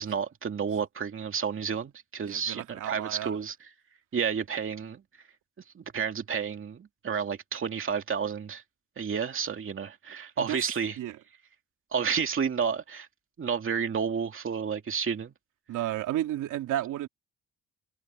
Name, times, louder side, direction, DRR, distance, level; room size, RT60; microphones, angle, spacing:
voice 1, 0.0-3.5 4.1-5.0 5.8-8.6 9.0-11.0 11.9-13.1 13.4-15.3, right 6 dB, 45° right, 2.5 m, -31 dB
voice 2, 2.3-3.4 10.4-10.6 11.0-11.2 15.7-17.1, right 13 dB, 85° right, 3.2 m, -32 dB
cardioid pair, 90°, 30 cm